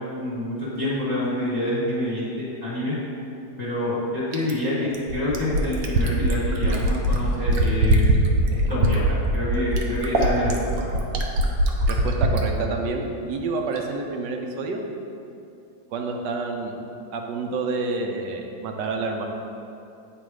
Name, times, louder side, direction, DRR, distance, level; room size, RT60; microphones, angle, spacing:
voice 1, 0.2-2.9 3.6-8.0 8.5-10.5, left 1 dB, 25° left, -9 dB, 1.1 m, -27 dB
Fill (with liquid), 4.3-12.4 13.8-13.9, right 1 dB, 65° right, 1.1 m, -21 dB
voice 2, 11.8-14.8 15.9-16.9 17.1-19.3, right 3 dB, 90° right, 3 dB, 1.3 m, -28 dB
8.6 x 3.3 x 4.7 m, 2.7 s
omnidirectional pair, 1.9 m